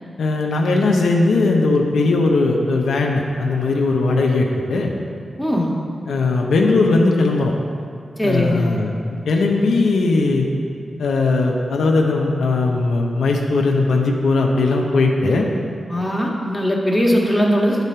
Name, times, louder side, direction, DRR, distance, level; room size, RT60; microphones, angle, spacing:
voice 1, 0.2-4.9 6.1-7.5 8.2-8.9 9.3-10.5 11.0-15.5, left 3 dB, 85° left, 0 dB, 0.6 m, -18 dB
voice 2, 5.4-5.7 8.2-8.8 15.9-17.8, equal, 5° left, -3 dB, 1.5 m, -19 dB
8.2 x 4.1 x 5.6 m, 2.4 s
cardioid pair, 45°, 0 cm